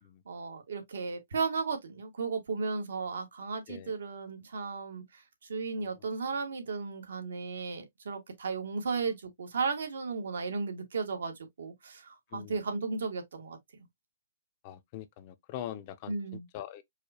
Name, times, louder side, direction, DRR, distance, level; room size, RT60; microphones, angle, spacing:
voice 1, 0.3-5.0 5.5-13.6 16.1-16.5, right 4 dB, 80° right, 1.3 m, -35 dB
voice 2, 12.3-12.6 14.6-16.8, left 11 dB, 35° left, 0.5 m, -43 dB
4.7 x 2.1 x 2.8 m
hypercardioid pair, 155°, 0 cm